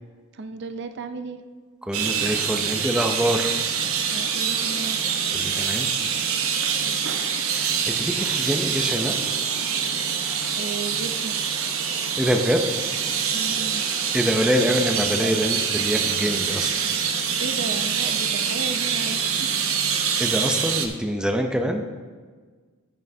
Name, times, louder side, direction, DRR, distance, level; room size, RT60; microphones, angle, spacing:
voice 1, 0.3-1.4 4.1-5.0 6.8-7.0 10.6-11.4 13.3-13.8 14.6-15.4 17.4-19.6, right 3 dB, 55° right, 8 dB, 0.5 m, -35 dB
voice 2, 1.8-3.5 5.3-5.9 7.5-9.2 12.2-12.6 14.1-16.8 20.2-21.8, equal, 5° right, 3 dB, 0.5 m, -25 dB
sound 1, 1.9-20.9, right 7 dB, 85° right, 0.8 m, -25 dB
9.8 x 9.5 x 2.7 m, 1.5 s
head